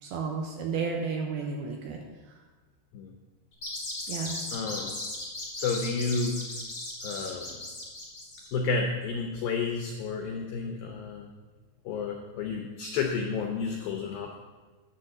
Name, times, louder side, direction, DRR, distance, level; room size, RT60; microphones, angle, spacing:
voice 1, 0.0-2.0 4.1-4.4, right 5 dB, 80° right, 1 dB, 2.3 m, -32 dB
sound 1, 3.5-8.5, left 2 dB, 20° left, 2.5 m, -37 dB
voice 2, 4.5-4.9 5.6-6.4 7.0-7.6 8.5-11.3 11.9-14.4, left 4 dB, 90° left, 2 dB, 2.0 m, -31 dB
9.8 x 4.4 x 6.4 m, 1.3 s
omnidirectional pair, 5.0 m